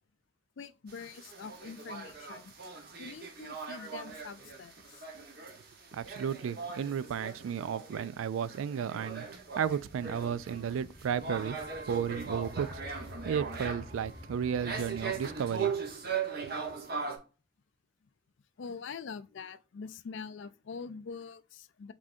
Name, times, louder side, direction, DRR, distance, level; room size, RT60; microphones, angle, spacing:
voice 1, 0.6-2.5 3.0-5.0 18.6-21.9, left 5 dB, 65° left, 0.4 m, -44 dB
sound 1, 0.9-17.2, right 5 dB, 50° right, 1.1 m, -39 dB
voice 2, 5.9-11.6 11.9-15.9 16.4-16.5, right 8 dB, 75° right, 0.3 m, -34 dB
sound 2, 9.3-16.2, left 1 dB, 5° left, 1.1 m, -50 dB
Wind instrument woodwind instrument, 11.1-17.0, right 1 dB, 25° right, 1.7 m, -55 dB
5.0 x 3.5 x 2.6 m
head